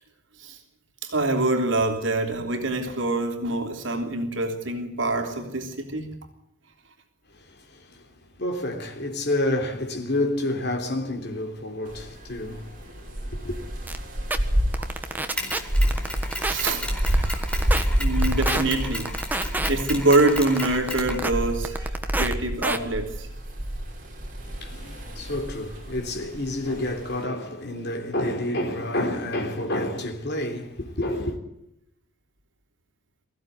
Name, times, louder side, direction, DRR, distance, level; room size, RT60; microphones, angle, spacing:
voice 1, 1.0-6.2 14.8-14.9 15.3-15.5 16.4-23.3, right 2 dB, 75° right, 3.5 m, -26 dB
voice 2, 7.3-13.6 24.4-31.4, left 1 dB, 55° left, 3.5 m, -29 dB
sound 1, 11.9-27.2, equal, 45° right, 5.8 m, -29 dB
sound 2, 13.9-14.0 14.3-14.4 14.7-15.6 15.9-16.7 17.0-17.8 18.2-18.6 19.1-19.7 20.1-21.3 21.6-22.3 22.6-22.8, right 2 dB, 10° right, 1.4 m, -27 dB
Mechanisms, 15.4-21.7, left 1 dB, 5° left, 4.4 m, -35 dB
23.5 x 15.5 x 9.5 m
head